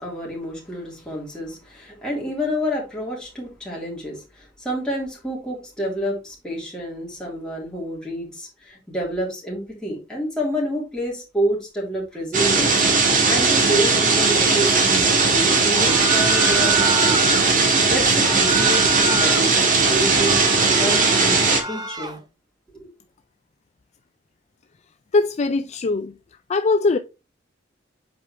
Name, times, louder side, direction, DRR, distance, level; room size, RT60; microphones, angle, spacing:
voice 1, 0.0-17.3 17.6-18.9 19.2-21.4 21.6-22.2 22.7-22.9, equal, 5° left, 3.3 m, -29 dB
sound 1, 12.3-21.6, right 4 dB, 45° right, 1.7 m, -18 dB
sound 2, 15.7-17.4 18.1-19.5 19.9-22.2, right 3 dB, 20° right, 1.0 m, -28 dB
voice 2, 25.1-26.1 26.5-27.0, left 3 dB, 35° left, 0.4 m, -20 dB
7.7 x 4.8 x 3.3 m
head